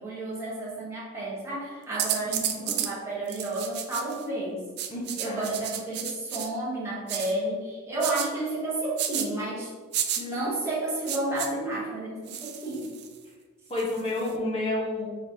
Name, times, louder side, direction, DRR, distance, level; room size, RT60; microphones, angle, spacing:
voice 1, 0.0-4.6 5.1-9.7 10.2-12.9, right 2 dB, 15° right, -7 dB, 1.2 m, -31 dB
sound 1, 2.0-2.9 3.3-4.2 4.8-6.5 7.1-7.3 8.0-8.3 9.0-9.3 9.9-10.2 11.1-11.5 12.3-13.2 13.8-14.3, right 10 dB, 50° right, 0.4 m, -31 dB
voice 2, 2.2-2.7 4.9-5.6 13.7-15.1, left 1 dB, 25° left, -5 dB, 1.1 m, -31 dB
4.7 x 4.0 x 2.8 m, 1.5 s
head